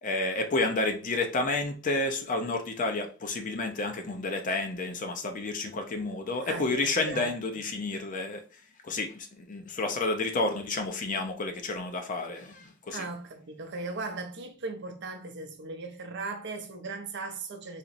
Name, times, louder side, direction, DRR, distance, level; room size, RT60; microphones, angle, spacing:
voice 1, 0.0-8.4 8.8-13.0, left 2 dB, 35° left, 0.5 m, -30 dB
voice 2, 6.4-7.6 12.9-17.8, right 3 dB, 55° right, 0.6 m, -38 dB
4.1 x 3.0 x 2.5 m
head